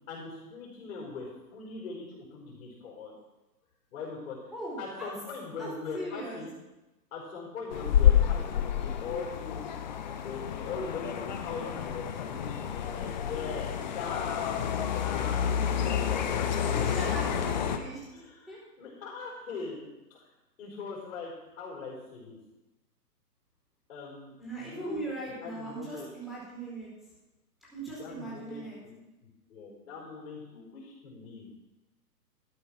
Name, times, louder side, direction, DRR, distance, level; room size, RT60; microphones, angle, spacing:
voice 1, 0.1-3.1 3.9-4.4 4.8-6.5 7.1-9.6 10.1-17.7 18.1-20.3 20.6-22.4 23.9-26.1 28.0-29.0 29.5-31.5, left 4 dB, 45° left, -5 dB, 5.3 m, -41 dB
voice 2, 4.5-5.1 5.6-5.7 5.9-6.4 16.0-18.0 18.5-18.6 24.4-26.9 27.7-28.8, right 1 dB, ahead, -7 dB, 4.3 m, -39 dB
sound 1, 7.7-17.8, left 9 dB, 30° left, 0.7 m, -29 dB
13.0 x 8.7 x 6.0 m, 1.0 s
hypercardioid pair, 150°, 50 cm